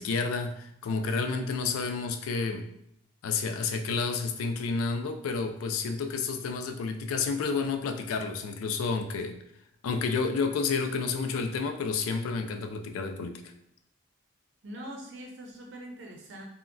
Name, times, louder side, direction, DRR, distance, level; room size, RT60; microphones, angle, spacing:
voice 1, 0.0-2.7 3.2-9.4 9.8-13.4, left 4 dB, 90° left, 6 dB, 0.3 m, -30 dB
voice 2, 14.6-16.4, right 1 dB, 60° right, 0 dB, 0.6 m, -43 dB
3.6 x 2.1 x 2.2 m, 0.75 s
head